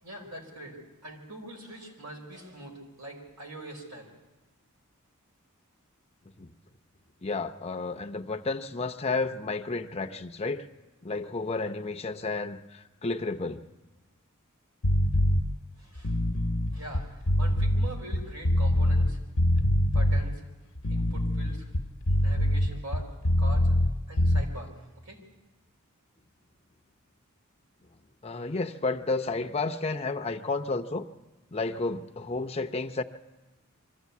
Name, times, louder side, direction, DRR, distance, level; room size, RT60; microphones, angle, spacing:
voice 1, 0.0-4.1 15.8-16.2 16.7-19.2 19.9-20.4 20.9-21.6 22.2-23.1 23.4-23.7 24.1-24.7 25.0-25.2, right 1 dB, 85° right, 1 dB, 4.8 m, -43 dB
voice 2, 7.2-10.6 11.0-13.6 28.2-31.0 31.5-33.0, left 3 dB, 30° left, 5 dB, 0.6 m, -31 dB
sound 1, 14.8-15.4 16.0-19.1 19.4-20.2 20.8-23.9 24.2-24.4, left 1 dB, 70° left, 0.9 m, -24 dB
24.0 x 14.0 x 8.3 m, 1.1 s
head